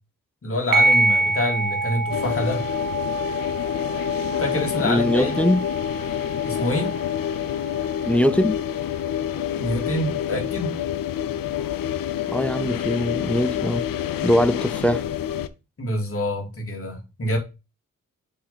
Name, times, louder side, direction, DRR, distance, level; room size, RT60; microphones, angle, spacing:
voice 1, 0.4-2.6 4.4-5.4 6.4-6.9 9.6-10.8 15.8-17.4, left 1 dB, 40° left, 2.8 m, -26 dB
sound 1, 0.7-9.7, right 2 dB, 75° right, 1.1 m, -27 dB
sound 2, 2.1-15.5, left 11 dB, 85° left, 0.7 m, -27 dB
voice 2, 4.8-5.6 8.0-8.6 12.3-13.9 14.2-15.1, left 1 dB, 5° left, 0.4 m, -21 dB
7.0 x 3.8 x 5.7 m
cardioid pair, 80°, 33 cm